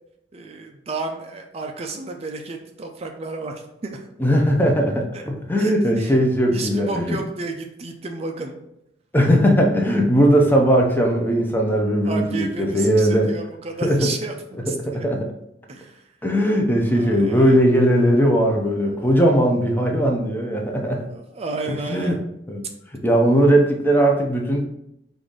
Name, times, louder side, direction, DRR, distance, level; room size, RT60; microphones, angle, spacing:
voice 1, 0.3-4.1 5.6-6.1 6.5-8.6 12.0-14.3 14.7-15.0 15.7-16.0 16.9-17.6 18.8-19.2 20.6-20.7 21.1-22.2, right 3 dB, 35° right, 3 dB, 0.4 m, -32 dB
voice 2, 4.2-7.2 9.1-13.3 13.8-14.1 14.9-15.3 16.2-21.1 21.9-22.1 22.5-22.6 22.9-24.6, equal, 10° left, 2 dB, 0.6 m, -18 dB
4.8 x 2.6 x 3.8 m, 0.81 s
head